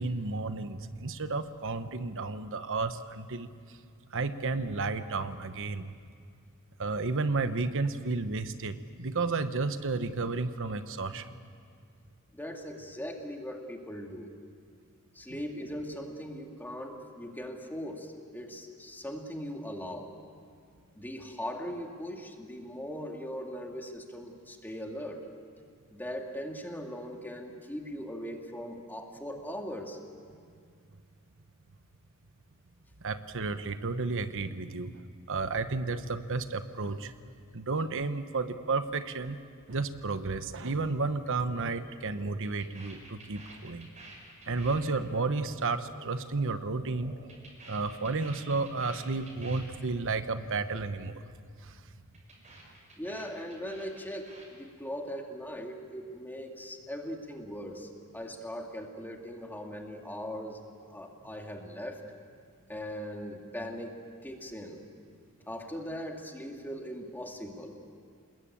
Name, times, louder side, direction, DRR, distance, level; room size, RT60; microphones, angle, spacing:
voice 1, 0.0-3.8 4.1-5.9 6.8-11.4 33.0-37.1 37.5-39.4 39.7-43.9 44.5-47.1 47.7-51.2 51.6-51.8, right 3 dB, 60° right, 10 dB, 1.0 m, -32 dB
voice 2, 12.3-14.3 15.1-20.1 21.0-25.3 25.9-30.0 53.0-60.6 60.9-62.0 62.7-64.8 65.5-67.7, equal, 10° left, 2 dB, 2.2 m, -40 dB
sound 1, 42.0-46.6 46.8-49.8 50.0-50.2 50.5-50.8 51.1-51.4 51.7-54.5, right 2 dB, 35° right, 6.4 m, -51 dB
28.5 x 20.5 x 8.6 m, 2.2 s
head